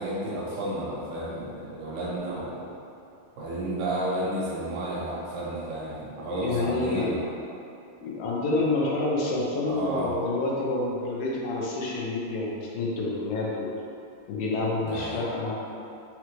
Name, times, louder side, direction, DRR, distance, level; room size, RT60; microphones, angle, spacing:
voice 1, 0.0-2.7 3.4-7.3 9.6-10.2 14.8-15.2, right 1 dB, 80° right, -7 dB, 2.5 m, -32 dB
voice 2, 6.3-7.1 8.0-13.7 14.3-15.5, left 2 dB, 85° left, -4 dB, 2.3 m, -28 dB
5.7 x 2.2 x 3.0 m, 2.6 s
omnidirectional pair, 4.1 m